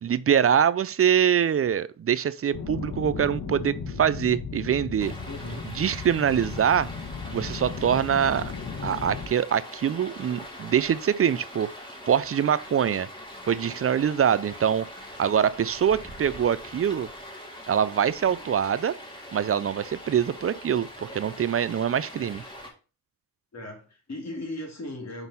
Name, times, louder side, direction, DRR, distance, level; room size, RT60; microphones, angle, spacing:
voice 1, 0.0-5.1 5.8-6.9 7.3-8.5 8.8-11.7 12.1-13.1 13.5-14.9 15.2-17.1 17.7-18.9 19.3-22.4, right 8 dB, 40° right, 0.4 m, -24 dB
sound 1, 2.5-9.3, left 5 dB, 65° left, 1.4 m, -36 dB
Stream, 5.0-22.7, equal, 15° left, 2.2 m, -42 dB
voice 2, 5.3-5.7 23.5-25.3, left 1 dB, 45° left, 2.8 m, -37 dB
5.2 x 4.0 x 5.4 m
cardioid pair, 70°, 37 cm